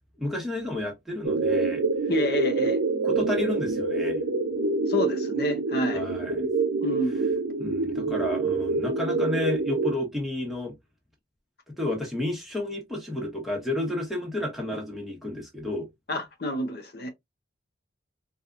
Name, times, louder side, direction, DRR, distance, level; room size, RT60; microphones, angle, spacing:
voice 1, 0.2-1.8 3.0-4.2 5.9-6.5 7.6-10.7 11.8-15.9, left 1 dB, ahead, 1.0 m, -31 dB
sound 1, 1.2-9.9, right 3 dB, 85° right, 0.6 m, -26 dB
voice 2, 2.1-2.8 4.9-6.0 6.8-7.3 16.1-17.1, left 1 dB, 55° left, 0.6 m, -29 dB
4.2 x 2.3 x 2.4 m
head